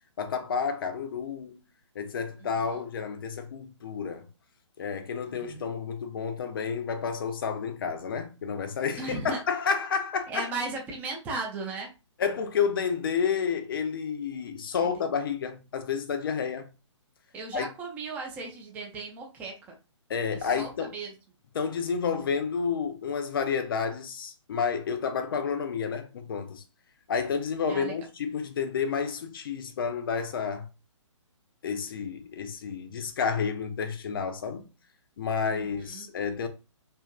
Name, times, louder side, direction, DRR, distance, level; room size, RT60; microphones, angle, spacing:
voice 1, 0.2-1.6 2.0-4.3 4.8-10.5 12.2-16.7 17.5-17.7 20.1-20.9 21.5-26.6 27.1-30.7 31.6-34.7 35.2-36.5, left 6 dB, 45° left, 0.5 m, -30 dB
voice 2, 2.4-2.8 5.2-5.7 9.0-9.4 10.3-11.9 14.8-15.0 17.3-19.8 20.3-21.1 27.7-27.9 35.5-36.1, right 3 dB, 10° right, 0.5 m, -37 dB
2.8 x 2.5 x 2.3 m
figure-of-eight pair, 130°, 16 cm